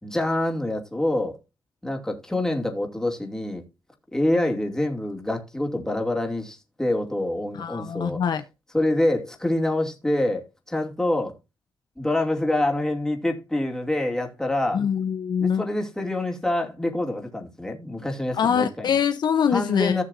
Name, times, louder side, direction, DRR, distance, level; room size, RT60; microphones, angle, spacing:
voice 1, 0.0-1.4 1.8-3.6 4.1-8.2 8.7-11.3 12.0-14.8 15.4-18.9 19.5-20.0, left 1 dB, 5° left, 2.6 m, -26 dB
voice 2, 7.6-8.4 14.7-15.6 18.4-20.0, left 7 dB, 65° left, 0.8 m, -24 dB
15.5 x 6.4 x 2.7 m
cardioid pair, 105°, 8 cm